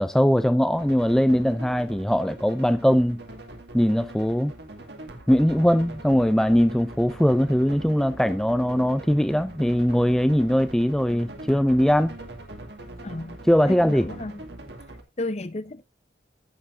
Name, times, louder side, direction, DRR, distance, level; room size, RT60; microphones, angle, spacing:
voice 1, 0.0-3.2 3.7-4.5 5.3-12.2 13.5-14.1, equal, 5° left, 0.4 m, -21 dB
sound 1, 0.7-15.0, right 1 dB, 70° right, 2.2 m, -42 dB
voice 2, 13.0-13.4 13.6-14.3 15.2-15.9, left 2 dB, 40° left, 0.8 m, -32 dB
15.5 x 7.2 x 2.5 m
head